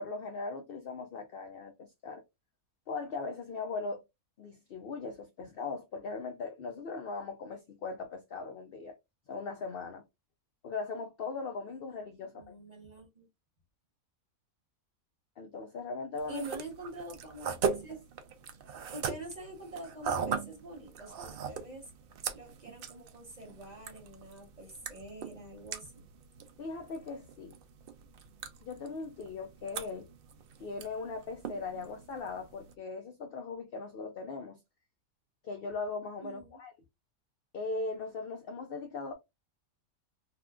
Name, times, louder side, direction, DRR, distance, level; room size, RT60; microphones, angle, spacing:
voice 1, 0.0-2.2 2.9-4.0 4.4-8.9 9.3-10.0 10.6-12.5 15.4-16.5 26.6-27.6 28.6-30.1 30.6-34.6 35.4-36.7 37.5-39.1, left 4 dB, 75° left, 0.5 m, -39 dB
voice 2, 12.2-13.3 16.3-18.1 18.5-18.6 18.9-21.9 22.3-26.1 36.2-36.6, right 2 dB, 35° right, 0.8 m, -46 dB
sound 1, 16.2-32.7, right 6 dB, 85° right, 0.5 m, -40 dB
3.5 x 2.4 x 2.2 m
omnidirectional pair, 1.5 m